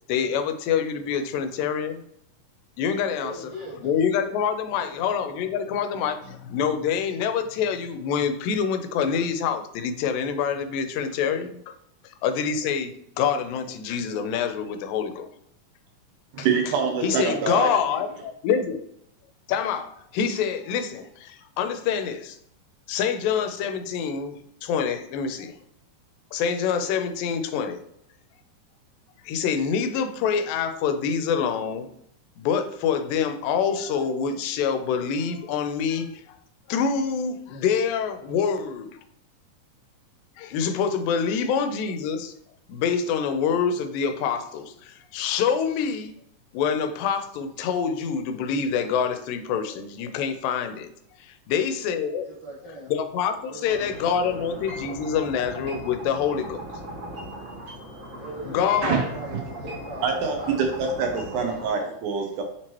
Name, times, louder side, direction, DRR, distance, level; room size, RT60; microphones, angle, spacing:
voice 1, 0.1-2.0 2.8-3.5 3.8-11.7 12.2-12.9 13.2-15.3 16.4-16.5 17.0-18.8 19.5-22.4 22.9-25.5 26.3-27.8 29.3-31.9 32.4-36.4 36.7-39.0 40.4-42.3 42.7-46.1 46.5-50.9 51.2-52.3 52.9-56.6 57.3-57.4 58.4-59.1, left 7 dB, 85° left, 9 dB, 2.2 m, -26 dB
voice 2, 3.2-3.7 4.7-4.9 17.2-17.4 17.8-18.0 52.2-52.9 53.5-53.9 54.2-54.4 58.1-60.6 61.4-61.6, right 1 dB, 60° left, -9 dB, 0.4 m, -40 dB
voice 3, 16.3-17.7 58.8-59.4 60.0-62.4, right 5 dB, 80° right, 3 dB, 1.9 m, -25 dB
sound 1, 53.7-61.7, right 1 dB, 60° right, 0.9 m, -38 dB
6.0 x 2.9 x 3.0 m, 0.72 s
omnidirectional pair, 3.9 m